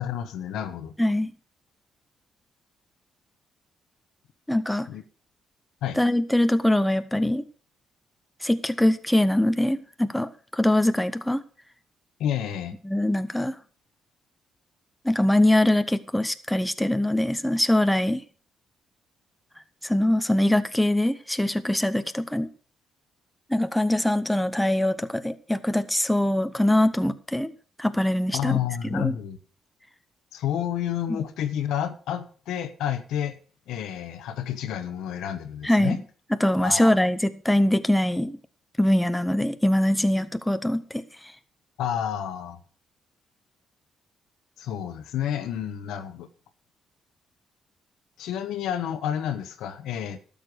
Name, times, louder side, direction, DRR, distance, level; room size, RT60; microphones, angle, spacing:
voice 1, 0.0-0.9 4.9-5.0 5.8-6.0 12.2-12.7 28.3-29.4 30.3-33.4 33.7-36.0 36.6-36.9 41.8-42.6 44.6-46.3 48.2-50.2, left 10 dB, 85° left, 1.1 m, -30 dB
voice 2, 1.0-1.3 4.5-4.9 6.0-7.4 8.4-11.4 12.8-13.5 15.0-18.2 19.8-22.5 23.5-27.5 27.8-28.6 28.9-29.1 31.1-31.2 35.6-36.0 36.4-38.4 38.8-41.0, left 1 dB, 5° left, 0.8 m, -23 dB
12.5 x 6.8 x 6.4 m
cardioid pair, 90°, 0 cm